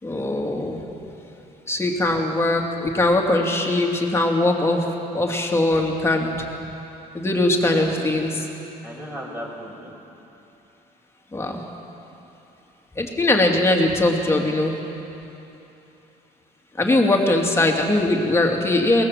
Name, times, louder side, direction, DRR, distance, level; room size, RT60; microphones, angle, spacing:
voice 1, 0.0-0.8 1.7-4.8 5.1-6.3 7.1-8.5 11.3-11.6 12.9-14.7 16.8-19.0, left 2 dB, 15° left, 0 dB, 2.9 m, -21 dB
voice 2, 7.7-8.2 8.8-9.9 16.8-17.0, equal, 10° right, -2 dB, 6.0 m, -36 dB
22.5 x 19.0 x 7.6 m, 2.9 s
cardioid pair, 110°, 17 cm